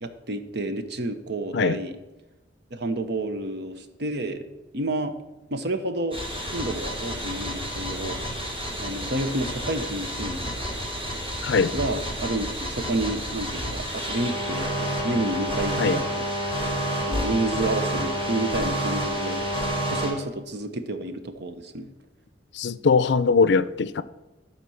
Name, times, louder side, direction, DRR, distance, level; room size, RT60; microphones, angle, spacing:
voice 1, 0.0-2.0 2.7-4.5 4.7-5.2 5.5-6.2 6.5-8.2 8.8-10.6 11.7-16.3 17.0-19.4 19.8-21.9, right 2 dB, 65° right, 0.9 m, -30 dB
sound 1, 6.1-20.1, equal, 30° right, 2.9 m, -29 dB
voice 2, 11.4-11.7 15.8-16.0 22.5-24.0, left 4 dB, 65° left, 0.5 m, -21 dB
12.5 x 4.4 x 7.1 m
head